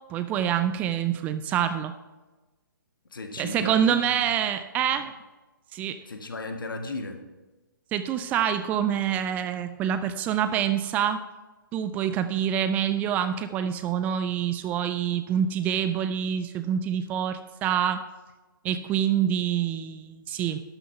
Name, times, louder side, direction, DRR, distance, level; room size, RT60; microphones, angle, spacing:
voice 1, 0.1-1.9 3.4-5.1 5.7-6.0 7.9-11.2 11.7-18.0 18.6-20.6, right 9 dB, 15° right, 11 dB, 0.3 m, -26 dB
voice 2, 3.1-4.3 4.9-5.1 6.0-7.2, left 3 dB, 70° left, 5 dB, 1.6 m, -36 dB
12.0 x 6.4 x 5.6 m, 1.2 s
figure-of-eight pair, 130°, 12 cm